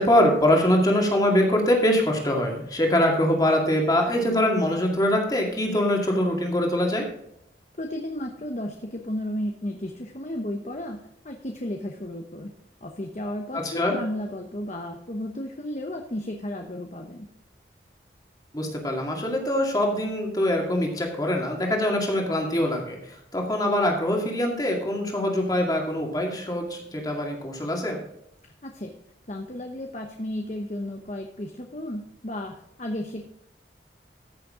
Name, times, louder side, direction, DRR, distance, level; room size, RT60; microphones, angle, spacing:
voice 1, 0.0-7.0 13.5-14.0 18.5-28.0, left 1 dB, 20° left, 1 dB, 2.1 m, -23 dB
voice 2, 7.8-12.5 12.8-17.3 28.6-28.9 29.3-33.2, left 1 dB, 40° left, 3 dB, 1.0 m, -33 dB
14.5 x 6.7 x 3.7 m, 0.80 s
head